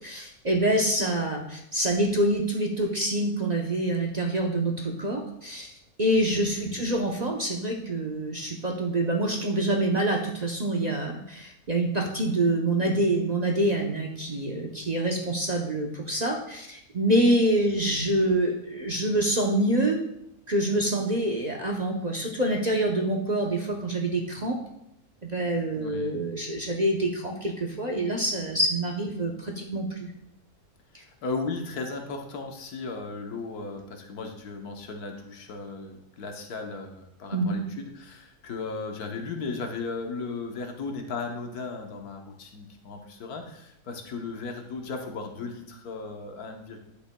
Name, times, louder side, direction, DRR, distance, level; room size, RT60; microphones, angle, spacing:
voice 1, 0.0-5.7 6.0-20.0 20.5-24.6 25.2-30.1 37.3-37.6, right 1 dB, 40° right, 0 dB, 0.6 m, -26 dB
voice 2, 6.4-6.8 25.8-26.2 30.9-46.8, left 4 dB, 80° left, 3 dB, 1.4 m, -36 dB
10.5 x 8.4 x 2.2 m, 0.80 s
omnidirectional pair, 1.6 m